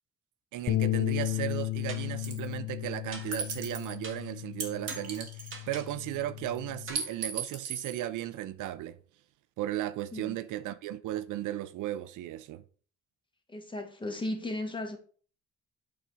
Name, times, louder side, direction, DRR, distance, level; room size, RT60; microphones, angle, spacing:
voice 1, 0.5-9.0 9.6-12.6, right 13 dB, 85° right, 0.6 m, -35 dB
Bass guitar, 0.7-6.9, left 16 dB, 55° left, 0.6 m, -34 dB
sound 1, 1.2-1.5 1.9-2.3 3.1-3.6 4.0-4.4 4.9-6.0 6.9-7.1, right 4 dB, 40° right, 1.8 m, -46 dB
sound 2, 2.2-2.5 3.3-3.9 4.6-5.8 7.0-8.0, right 5 dB, 55° right, 2.1 m, -36 dB
voice 2, 13.5-15.0, left 1 dB, 15° left, 1.6 m, -35 dB
7.8 x 3.9 x 4.7 m
cardioid pair, 90°, 30 cm